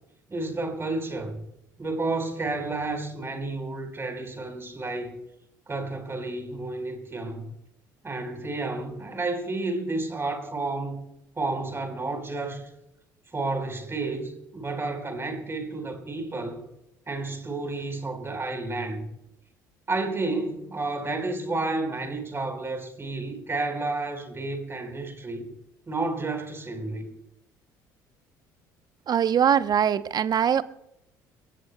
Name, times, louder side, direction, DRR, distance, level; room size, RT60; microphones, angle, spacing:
voice 1, 0.3-1.4 1.8-5.1 5.7-7.5 8.0-11.0 11.4-12.7 13.3-16.6 17.1-19.1 19.9-25.5 25.9-27.1, right 2 dB, 25° right, 4.3 m, -31 dB
voice 2, 29.1-30.6, right 8 dB, 40° right, 0.8 m, -22 dB
30.0 x 16.5 x 2.2 m
hypercardioid pair, 55°, 10 cm